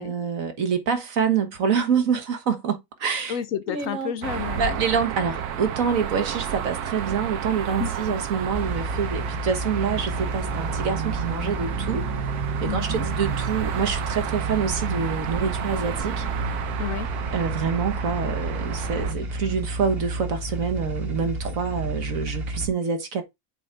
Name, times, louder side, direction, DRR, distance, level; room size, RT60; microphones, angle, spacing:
voice 1, 0.0-3.4 3.7-4.1 4.6-12.0 12.6-16.3 17.3-23.2, right 6 dB, 65° right, 1.6 m, -26 dB
voice 2, 3.3-4.9 7.8-8.1 12.7-13.1 16.8-17.1, left 9 dB, 70° left, 0.9 m, -31 dB
sound 1, 4.2-19.1, right 10 dB, 85° right, 1.3 m, -31 dB
sound 2, 8.5-22.7, right 1 dB, 40° right, 1.5 m, -31 dB
7.7 x 3.9 x 3.3 m
omnidirectional pair, 1.6 m